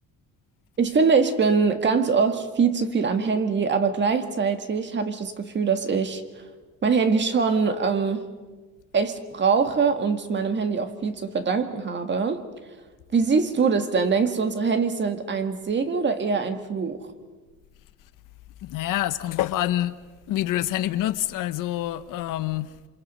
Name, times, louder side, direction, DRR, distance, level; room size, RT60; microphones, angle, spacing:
voice 1, 0.8-6.2 6.8-8.3 8.9-12.4 13.1-17.1, right 5 dB, 35° right, 1.8 m, -23 dB
voice 2, 18.6-20.0 20.3-22.7, left 14 dB, 70° left, 1.0 m, -26 dB
27.0 x 26.0 x 5.5 m
cardioid pair, 130°, 33 cm